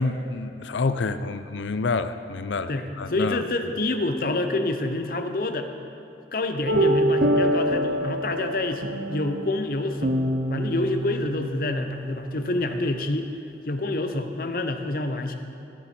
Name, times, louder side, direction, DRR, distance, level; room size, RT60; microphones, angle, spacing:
voice 1, 0.0-3.4, left 3 dB, 90° left, 11 dB, 0.5 m, -28 dB
voice 2, 2.7-5.7 6.3-10.2 10.5-13.3 13.7-15.4, left 2 dB, 50° left, 7 dB, 0.7 m, -27 dB
sound 1, 6.7-13.2, equal, 65° right, 0.7 m, -26 dB
16.0 x 7.2 x 4.3 m, 2.8 s
head